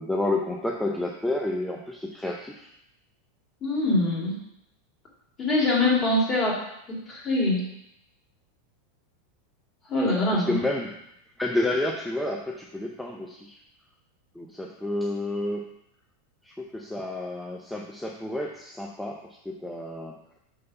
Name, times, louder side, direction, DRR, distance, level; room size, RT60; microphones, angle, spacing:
voice 1, 0.0-2.7 10.3-10.9 11.4-13.6 14.3-15.8 16.4-20.2, left 1 dB, 5° left, 0 dB, 0.6 m, -30 dB
voice 2, 3.6-4.4 5.4-6.6 6.9-7.6 9.9-10.6, left 2 dB, 30° left, -4 dB, 2.5 m, -24 dB
5.5 x 3.3 x 5.6 m, 0.80 s
hypercardioid pair, 95°, 0 cm